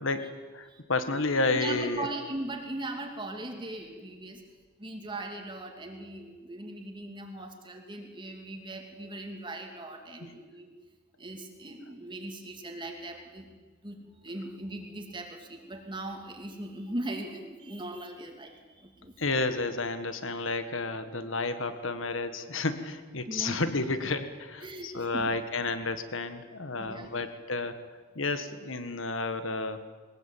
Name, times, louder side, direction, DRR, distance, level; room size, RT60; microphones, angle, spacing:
voice 1, 0.0-2.1 10.2-10.3 19.2-27.8 28.1-29.9, left 3 dB, 75° left, 10 dB, 1.6 m, -31 dB
voice 2, 1.5-4.4 4.8-10.7 11.2-13.5 13.8-19.2 23.3-23.6 24.6-25.3 26.7-27.1, right 1 dB, 25° right, 3 dB, 2.6 m, -39 dB
21.5 x 21.0 x 9.1 m, 1.4 s
head